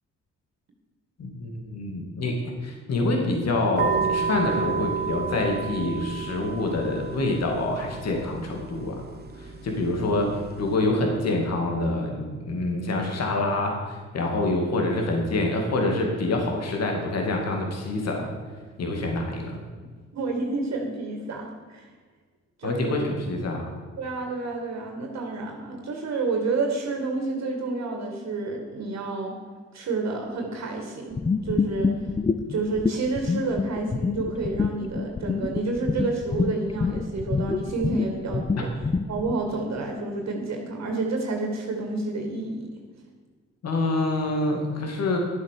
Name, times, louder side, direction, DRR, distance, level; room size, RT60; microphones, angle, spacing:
voice 1, 1.2-2.3 2.6-9.0 9.4-18.3 18.8-19.6 22.6-23.7 43.6-45.2, left 2 dB, 55° left, 1 dB, 2.5 m, -26 dB
sound 1, 3.8-10.8, right 6 dB, 35° right, 1.2 m, -32 dB
voice 2, 20.1-21.9 22.6-23.1 24.0-29.4 29.7-31.1 31.4-31.9 32.5-38.7 39.1-42.7, right 3 dB, 60° right, 2 dB, 2.2 m, -29 dB
sound 2, 31.1-39.4, left 4 dB, 20° left, 0.6 m, -27 dB
11.5 x 7.7 x 6.7 m, 1.5 s
cardioid pair, 90°, 30 cm